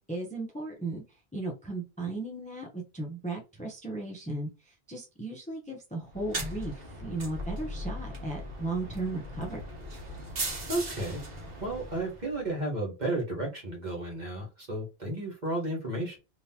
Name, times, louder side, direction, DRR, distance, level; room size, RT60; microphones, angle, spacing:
voice 1, 0.1-1.0 1.3-9.6, right 2 dB, 10° left, 1 dB, 0.7 m, -36 dB
sound 1, 6.1-12.5, right 1 dB, 60° right, 1.3 m, -38 dB
voice 2, 10.7-11.2 11.6-16.2, right 1 dB, 45° right, -1 dB, 1.5 m, -33 dB
3.7 x 2.9 x 2.8 m, 0.29 s
omnidirectional pair, 1.1 m